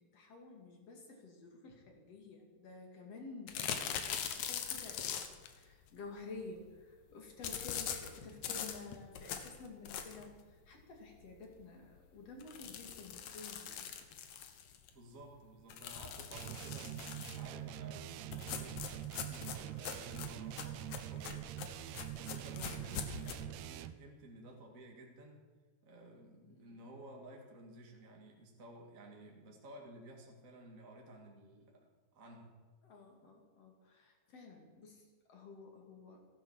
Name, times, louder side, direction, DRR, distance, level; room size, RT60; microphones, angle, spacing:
voice 1, 0.0-13.9 26.5-26.8 32.8-36.2, left 3 dB, 55° left, 2 dB, 3.4 m, -52 dB
sound 1, 3.5-5.5 7.4-10.3 10.8-10.9 11.2-11.3 11.6-11.7 12.4-14.9 15.7-17.5 18.3-23.3, left 8 dB, 75° left, 2.5 m, -42 dB
voice 2, 14.9-21.5 21.8-25.4 25.8-32.6, right 2 dB, 30° right, 0 dB, 2.1 m, -54 dB
sound 2, 16.3-24.1, right 13 dB, 80° right, 1.7 m, -44 dB
15.0 x 11.0 x 7.4 m, 1.4 s
omnidirectional pair, 3.4 m